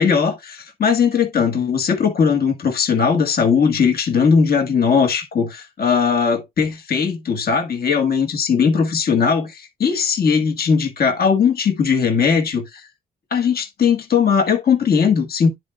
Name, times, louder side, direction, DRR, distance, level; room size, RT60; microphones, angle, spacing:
voice 1, 0.0-12.8 13.3-15.5, left 6 dB, 50° left, 1.8 m, -18 dB
10.5 x 4.5 x 2.4 m
cardioid pair, 90°, 20 cm